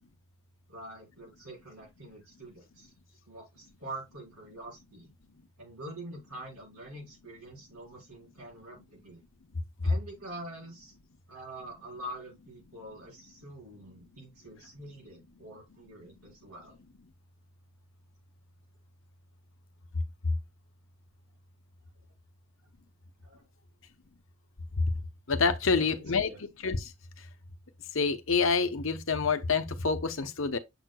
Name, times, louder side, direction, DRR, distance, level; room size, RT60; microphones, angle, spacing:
voice 1, 0.7-2.9 3.3-5.1 5.6-9.2 9.8-10.9 11.3-16.8 23.2-23.5 25.6-26.4, right 1 dB, 75° right, 4.0 m, -45 dB
voice 2, 25.3-26.3 26.6-26.8 27.9-30.6, left 4 dB, 60° left, 0.8 m, -27 dB
7.0 x 6.4 x 2.3 m
head